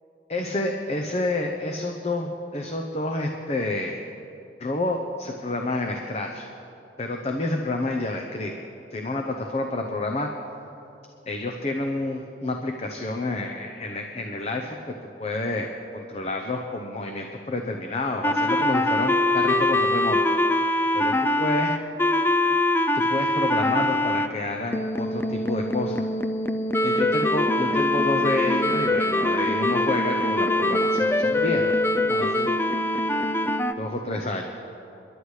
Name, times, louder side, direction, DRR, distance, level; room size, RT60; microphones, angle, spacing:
voice 1, 0.3-4.0 4.6-6.5 7.0-8.5 8.9-10.3 11.3-14.9 15.2-20.2 20.9-21.8 22.9-26.1 26.8-32.5 33.8-34.5, left 2 dB, 35° left, 3 dB, 0.8 m, -29 dB
sound 1, 18.2-24.3 24.7-33.7, left 1 dB, 10° left, 0.4 m, -23 dB
29.5 x 11.0 x 3.3 m, 2.8 s
head